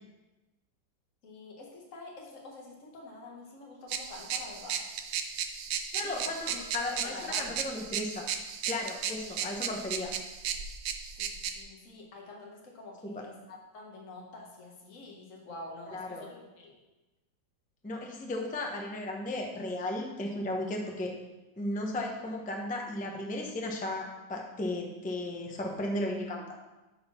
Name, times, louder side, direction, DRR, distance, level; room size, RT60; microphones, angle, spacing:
voice 1, 1.2-4.8 6.0-7.6 9.3-9.4 11.2-16.8, left 2 dB, 45° left, -1 dB, 1.7 m, -47 dB
sound 1, 3.9-11.6, right 7 dB, 85° right, 1.3 m, -35 dB
voice 2, 5.9-8.2 8.7-10.1 13.0-13.2 15.9-16.2 17.8-21.1 21.6-26.5, left 1 dB, 10° left, 1 dB, 0.5 m, -35 dB
8.5 x 4.2 x 5.7 m, 1.1 s
omnidirectional pair, 2.0 m